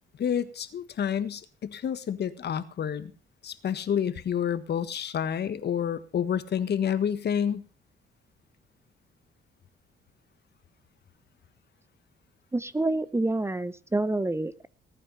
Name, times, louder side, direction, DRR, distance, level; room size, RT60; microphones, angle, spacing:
voice 1, 0.2-3.1 3.4-7.7, left 8 dB, 55° left, 12 dB, 1.6 m, -29 dB
voice 2, 12.5-14.7, right 2 dB, 15° right, 16 dB, 0.8 m, -28 dB
19.0 x 9.0 x 5.6 m, 0.35 s
cardioid pair, 90°, 20 cm